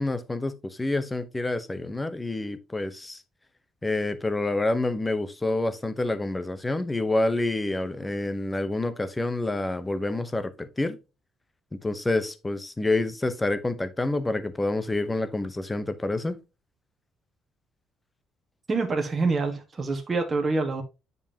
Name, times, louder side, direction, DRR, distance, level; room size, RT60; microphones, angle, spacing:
voice 1, 0.0-3.2 3.8-11.0 11.8-16.4, left 2 dB, 10° left, 0.9 m, -28 dB
voice 2, 18.7-20.8, right 3 dB, 25° right, 1.5 m, -26 dB
9.5 x 5.4 x 2.9 m
cardioid pair, 145°, 0 cm